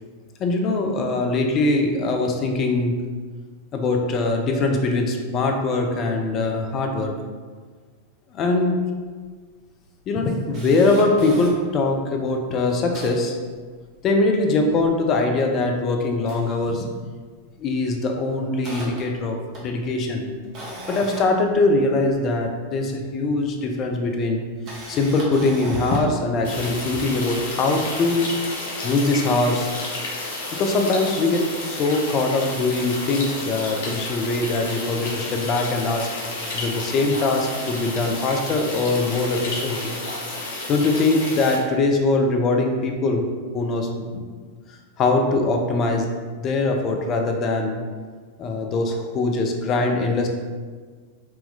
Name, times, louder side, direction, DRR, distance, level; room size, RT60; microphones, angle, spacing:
voice 1, 0.4-3.0 3.7-7.2 8.3-8.8 10.1-13.4 14.0-16.9 17.6-20.3 20.9-24.4 24.9-28.3 28.8-29.7 30.6-36.1 36.5-40.0 40.7-43.3 43.5-44.2 45.0-46.1 46.4-47.8 48.4-50.3, left 2 dB, 30° left, 3 dB, 0.4 m, -22 dB
Camera, 8.9-9.0 9.3-9.4 9.9-11.5 12.1-12.2 12.5-14.1 14.5-15.7 16.1-17.3 17.5-17.8 18.2-22.3 23.3-23.4 24.4-26.2 26.8-26.9, right 1 dB, 40° right, 1.0 m, -39 dB
sound 1, 26.4-41.6, left 2 dB, 60° left, 0.8 m, -31 dB
3.7 x 2.8 x 2.7 m, 1.5 s
figure-of-eight pair, 90°, 0 cm